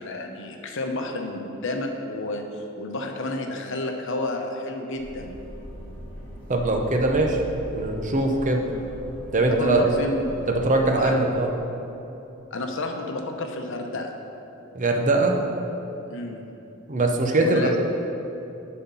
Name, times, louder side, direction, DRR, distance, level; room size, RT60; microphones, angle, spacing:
voice 1, 0.0-5.4 8.7-8.8 9.5-10.2 10.8-11.3 12.5-14.1 16.1-16.4 17.4-17.8, left 2 dB, 65° left, 3 dB, 0.8 m, -30 dB
sound 1, 5.0-11.0, equal, 5° left, 2.1 m, -40 dB
voice 2, 6.5-7.4 7.7-8.6 9.3-9.9 10.5-11.5 14.7-15.4 16.9-17.8, right 2 dB, 40° right, 2 dB, 0.8 m, -21 dB
11.0 x 4.3 x 5.6 m, 2.9 s
head